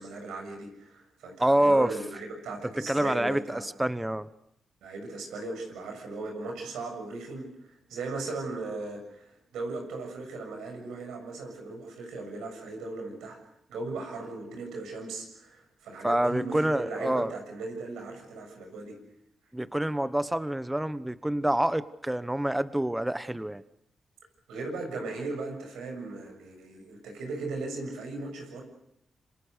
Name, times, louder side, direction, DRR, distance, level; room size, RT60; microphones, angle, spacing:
voice 1, 0.0-3.7 4.8-13.4 13.7-19.0 24.5-28.6, right 3 dB, 90° right, 3 dB, 7.0 m, -37 dB
voice 2, 1.4-1.9 2.9-4.3 16.0-17.3 19.5-23.6, right 1 dB, 10° right, 14 dB, 1.1 m, -27 dB
27.0 x 26.0 x 6.6 m, 0.79 s
supercardioid pair, 50°, 0 cm